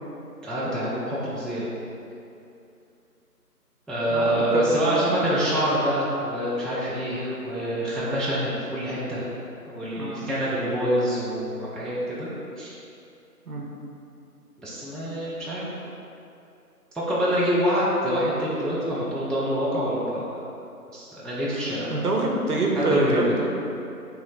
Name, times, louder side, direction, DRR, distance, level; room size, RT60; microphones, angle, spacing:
voice 1, 0.4-1.7 3.9-9.3 9.7-12.3 12.6-12.7 14.6-15.7 16.9-20.4 20.9-21.9 22.8-23.4, equal, ahead, -9 dB, 0.4 m, -26 dB
voice 2, 4.1-5.2 9.9-10.3 13.5-13.7 21.9-23.7, right 2 dB, 65° right, -1 dB, 0.7 m, -26 dB
3.0 x 3.0 x 3.8 m, 2.7 s
figure-of-eight pair, 175°, 48 cm